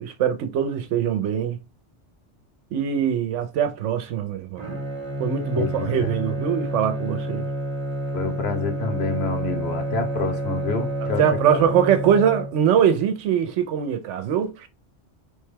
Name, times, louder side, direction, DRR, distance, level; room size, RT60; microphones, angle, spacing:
voice 1, 0.0-1.6 2.7-4.8 5.2-7.5 11.2-14.7, right 8 dB, 85° right, 0.9 m, -22 dB
Bowed string instrument, 4.6-12.9, right 1 dB, 35° right, 0.8 m, -29 dB
voice 2, 5.5-6.1 8.1-11.2 11.5-11.7, left 4 dB, 65° left, 1.0 m, -28 dB
3.4 x 2.2 x 3.2 m
omnidirectional pair, 1.2 m